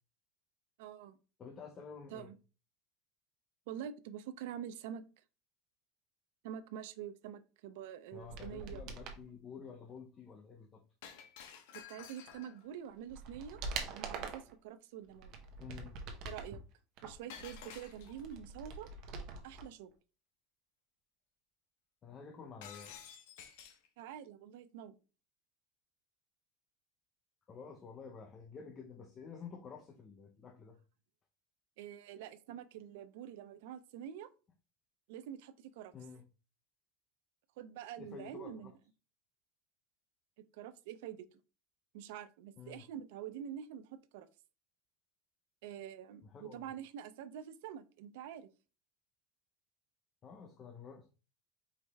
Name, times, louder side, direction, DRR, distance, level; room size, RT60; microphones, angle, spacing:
voice 1, 0.8-1.2 2.1-2.4 3.7-5.0 6.4-8.8 11.7-15.4 16.2-16.6 17.0-18.9 19.4-19.9 24.0-25.0 31.8-34.3 35.1-35.9 37.6-38.7 40.4-41.4 41.9-44.3 45.6-48.5, right 9 dB, 75° right, 12 dB, 0.4 m, -46 dB
voice 2, 1.4-2.3 8.1-10.8 15.6-16.0 22.0-22.9 27.5-30.8 35.9-36.2 38.0-38.7 42.6-42.8 46.2-46.7 50.2-51.1, left 6 dB, 25° left, 2 dB, 0.6 m, -50 dB
sound 1, 8.2-9.2 12.3-12.4 12.8-14.5 15.1-16.6 17.0-19.6 19.9-20.0, right 4 dB, 45° right, 0.8 m, -44 dB
Shatter, 11.0-12.7 17.3-18.3 22.6-23.9, left 8 dB, 75° left, 0.8 m, -52 dB
4.8 x 3.1 x 3.4 m, 0.34 s
cardioid pair, 160°, 0 cm